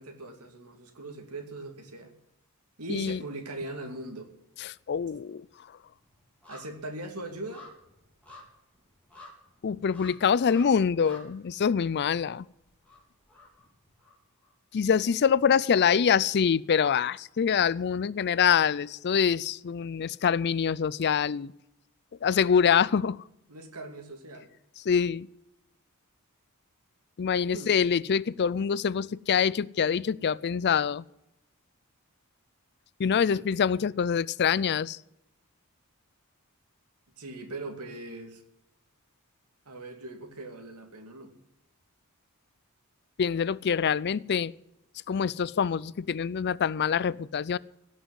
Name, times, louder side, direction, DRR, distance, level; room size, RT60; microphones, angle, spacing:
voice 1, 0.0-2.1 2.8-4.3 6.5-7.7 23.5-24.5 27.5-27.8 33.1-33.8 37.2-38.4 39.7-41.4, right 2 dB, 85° right, 2.5 m, -40 dB
voice 2, 2.9-3.2 4.6-5.5 9.6-12.5 14.7-21.5 22.2-23.2 24.8-25.3 27.2-31.0 33.0-35.0 43.2-44.5 45.1-47.6, left 7 dB, 50° left, 0.4 m, -25 dB
sound 1, 4.1-4.3 4.5-14.5 14.9-15.0, left 2 dB, 5° left, 3.8 m, -53 dB
17.5 x 6.3 x 9.6 m
head